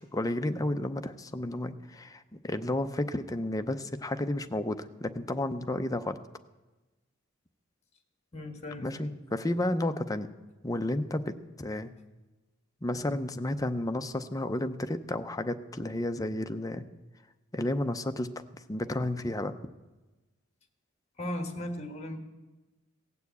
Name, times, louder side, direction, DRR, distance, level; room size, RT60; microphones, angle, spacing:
voice 1, 0.0-6.2 8.8-10.3 10.6-11.9 12.8-16.8 17.5-18.3 18.7-19.5, left 1 dB, 15° left, 9 dB, 0.6 m, -32 dB
voice 2, 8.3-9.2 21.2-22.2, left 1 dB, 30° left, 5 dB, 1.5 m, -37 dB
17.0 x 7.0 x 8.3 m, 1.1 s
head